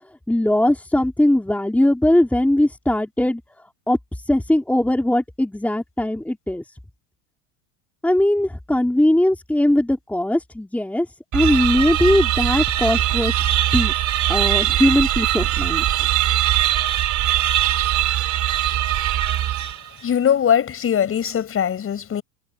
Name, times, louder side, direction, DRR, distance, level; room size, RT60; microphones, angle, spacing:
voice 1, 0.3-3.4 3.9-6.6 8.0-11.1 11.3-13.4 13.7-15.9, left 1 dB, 5° left, 4.2 m, -20 dB
sound 1, 11.3-20.0, right 13 dB, 35° right, 3.9 m, -21 dB
voice 2, 20.0-22.2, left 9 dB, 25° left, 6.8 m, -20 dB
supercardioid pair, 130°, 48 cm